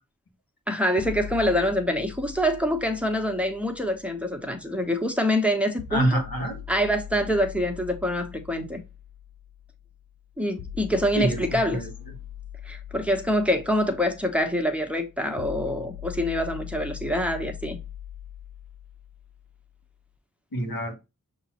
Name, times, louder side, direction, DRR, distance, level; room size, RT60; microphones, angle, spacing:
voice 1, 0.7-6.2 6.7-8.8 10.4-11.8 12.6-17.8, equal, 5° right, 0.9 m, -25 dB
sound 1, 1.0-5.0 5.8-19.8, left 10 dB, 70° left, 0.6 m, -41 dB
voice 2, 5.9-6.6 11.1-11.4 11.7-11.9 20.5-20.9, right 1 dB, 85° left, 1.4 m, -26 dB
5.9 x 3.0 x 2.9 m
wide cardioid pair, 45°, 35 cm